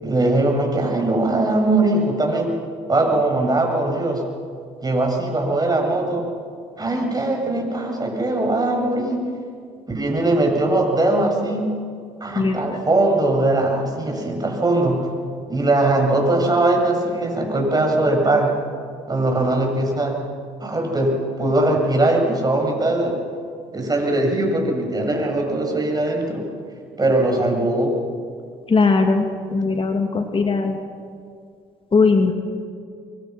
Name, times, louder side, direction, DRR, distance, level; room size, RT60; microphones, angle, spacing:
voice 1, 0.0-2.5 2.9-4.2 4.8-6.3 6.8-9.2 9.9-11.7 12.2-15.1 15.5-18.5 19.1-20.2 20.6-23.2 23.7-26.4 27.0-27.9, right 2 dB, 25° right, 1 dB, 7.4 m, -20 dB
voice 2, 28.7-30.8 31.9-32.3, left 4 dB, 35° left, 4 dB, 2.3 m, -19 dB
25.0 x 24.0 x 6.2 m, 2.2 s
hypercardioid pair, 60°, 16 cm